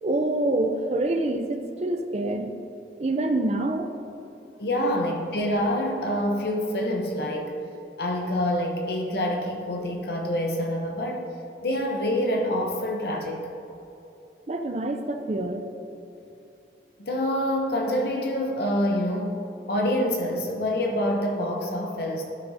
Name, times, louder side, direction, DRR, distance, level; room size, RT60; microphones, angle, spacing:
voice 1, 0.0-2.7 3.0-3.9 14.5-15.7, right 2 dB, 35° right, 6 dB, 0.5 m, -26 dB
voice 2, 4.6-7.6 8.0-11.3 11.6-13.4 17.0-19.4 19.7-22.2, left 1 dB, 60° left, 0 dB, 0.8 m, -26 dB
12.5 x 6.0 x 2.7 m, 2.9 s
head